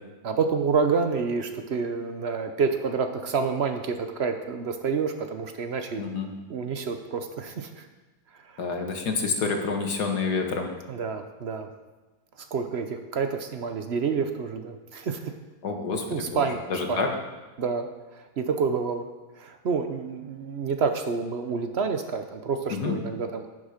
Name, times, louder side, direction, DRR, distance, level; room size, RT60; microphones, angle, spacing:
voice 1, 0.2-6.0 6.5-7.9 8.4-8.6 10.9-11.7 12.4-15.3 16.1-16.6 16.9-17.0 17.6-17.9 18.1-19.1 19.4-23.4, right 5 dB, 60° right, 7 dB, 0.6 m, -28 dB
voice 2, 6.0-6.3 8.6-10.7 15.6-16.5 16.7-17.1 22.7-23.0, left 4 dB, 55° left, 3 dB, 1.9 m, -28 dB
11.0 x 10.5 x 5.1 m, 1.2 s
omnidirectional pair, 2.1 m